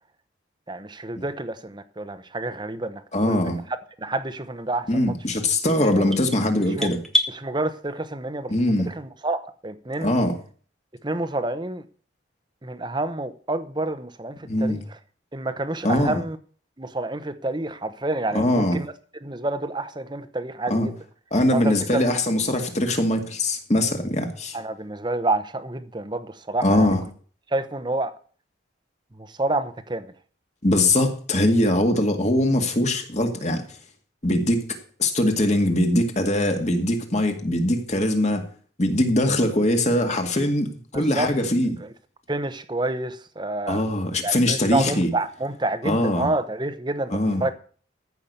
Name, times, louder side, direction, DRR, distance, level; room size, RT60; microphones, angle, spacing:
voice 1, 0.7-3.6 4.0-4.9 6.0-6.1 6.8-6.9 7.3-10.2 11.0-11.8 12.6-14.8 15.3-16.4 16.8-18.9 19.2-20.9 21.5-22.1 24.5-26.9 27.5-28.1 29.2-30.1 40.9-41.3 41.8-41.9 42.3-43.8 44.2-47.1 47.4-47.5, right 2 dB, 25° right, 0.9 m, -28 dB
voice 2, 3.1-3.6 4.9-7.0 8.5-8.9 10.0-10.4 14.4-14.8 15.8-16.2 18.3-18.8 20.7-20.9 21.3-24.6 26.6-27.0 30.6-33.6 34.2-38.4 38.8-41.8 43.7-45.1 45.8-46.3 47.1-47.4, left 1 dB, 35° left, 2.0 m, -22 dB
sound 1, 5.5-7.3, equal, ahead, 1.0 m, -27 dB
14.5 x 6.0 x 6.8 m
head